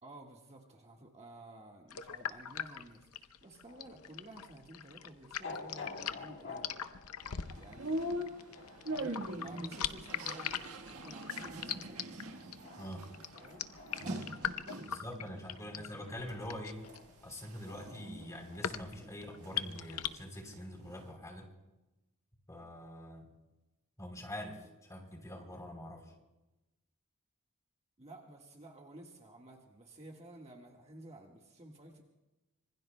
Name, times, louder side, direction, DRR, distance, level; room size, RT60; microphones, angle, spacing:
voice 1, 0.0-6.7 7.5-12.1 13.3-13.7 13.9-15.0 15.6-16.0 28.0-32.0, right 1 dB, 30° right, 0 dB, 1.6 m, -53 dB
sound 1, 1.9-20.1, left 9 dB, 90° left, 0.7 m, -41 dB
sound 2, 3.7-20.2, left 3 dB, 60° left, 1.5 m, -52 dB
sound 3, 7.2-15.1 15.6-16.3 16.8-19.7 19.9-21.1, right 1 dB, 85° right, 1.5 m, -43 dB
voice 2, 12.8-13.1 14.0-14.2 14.9-16.8 17.2-21.5 22.5-23.3 24.0-26.1, equal, 15° left, 2 dB, 3.4 m, -45 dB
26.0 x 24.5 x 2.2 m, 1.0 s
head